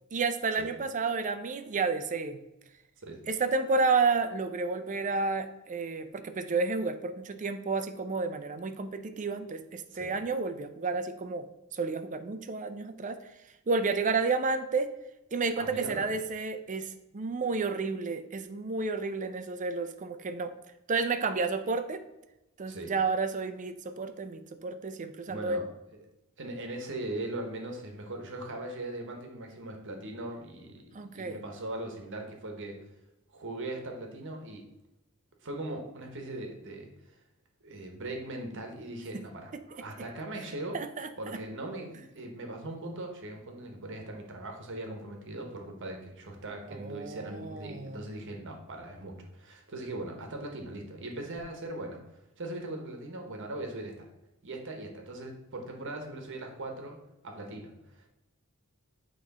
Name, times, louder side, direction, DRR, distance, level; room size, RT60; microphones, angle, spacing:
voice 1, 0.1-2.4 3.3-11.5 11.7-13.2 13.7-14.9 15.3-20.5 20.9-22.0 22.6-25.6 30.9-31.4 39.1-39.2 39.7-39.8 40.7-41.4 46.7-48.1, right 4 dB, 35° right, 9 dB, 0.5 m, -31 dB
voice 2, 15.6-16.1 22.7-22.9 25.3-25.7 26.4-32.8 33.3-34.6 35.4-36.9 37.6-39.5 39.8-40.8 41.2-52.0 52.4-54.1 54.4-57.0 57.2-58.1, right 1 dB, 60° right, 3 dB, 1.1 m, -39 dB
8.1 x 3.1 x 4.1 m, 0.94 s
head